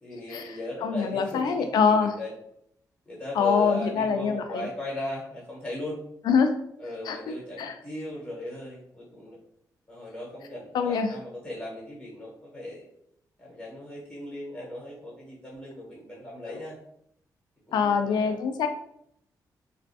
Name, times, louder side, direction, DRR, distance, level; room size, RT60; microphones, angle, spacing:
voice 1, 0.0-2.3 3.1-6.0 6.8-9.4 9.9-12.9 13.4-16.8 17.7-18.4, left 1 dB, 15° left, -6 dB, 0.9 m, -38 dB
voice 2, 0.8-2.1 3.4-4.6 6.3-6.5 7.1-7.7 10.7-11.1 17.7-18.7, left 6 dB, 90° left, 7 dB, 0.3 m, -24 dB
2.4 x 2.1 x 2.7 m, 0.72 s
wide cardioid pair, 125°, 7 cm